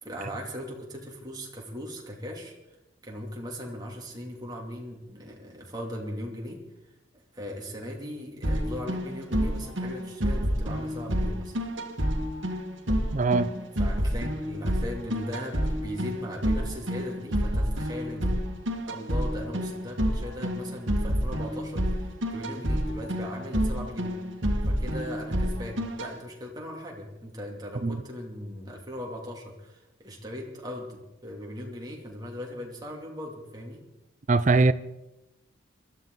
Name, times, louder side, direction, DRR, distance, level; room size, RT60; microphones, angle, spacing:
voice 1, 0.0-2.5 3.0-6.6 7.3-11.5 13.8-18.3 18.9-24.1 24.7-33.8, equal, 20° right, 2.8 m, -38 dB
sound 1, 8.4-26.1, equal, 70° right, 1.9 m, -29 dB
voice 2, 13.1-13.5 27.8-28.0 34.3-34.7, right 3 dB, 40° right, 0.5 m, -21 dB
22.0 x 13.5 x 4.0 m
head